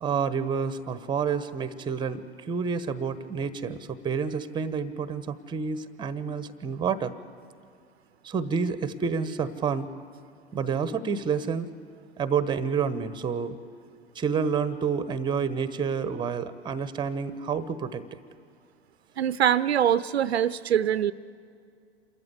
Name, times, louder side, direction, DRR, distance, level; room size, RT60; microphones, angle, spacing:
voice 1, 0.0-7.1 8.2-9.9 10.5-11.7 12.2-13.6 14.1-18.0, right 6 dB, 15° right, 15 dB, 0.9 m, -29 dB
voice 2, 19.2-21.1, right 10 dB, 70° right, 17 dB, 0.6 m, -23 dB
27.0 x 14.0 x 8.2 m, 2.3 s
figure-of-eight pair, 95°, 33 cm